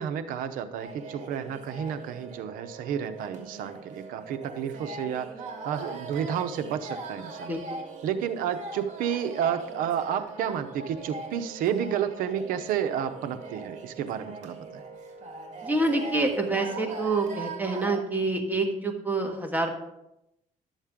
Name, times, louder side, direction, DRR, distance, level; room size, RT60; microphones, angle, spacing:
voice 1, 0.0-5.3 5.6-7.5 8.0-14.8, right 8 dB, 90° right, 10 dB, 0.8 m, -31 dB
sound 1, 0.8-17.9, right 3 dB, 60° right, 2.0 m, -41 dB
voice 2, 7.5-7.8 15.6-19.7, right 2 dB, 10° right, 2 dB, 1.6 m, -27 dB
12.0 x 7.3 x 3.6 m, 0.85 s
cardioid pair, 105°, 14 cm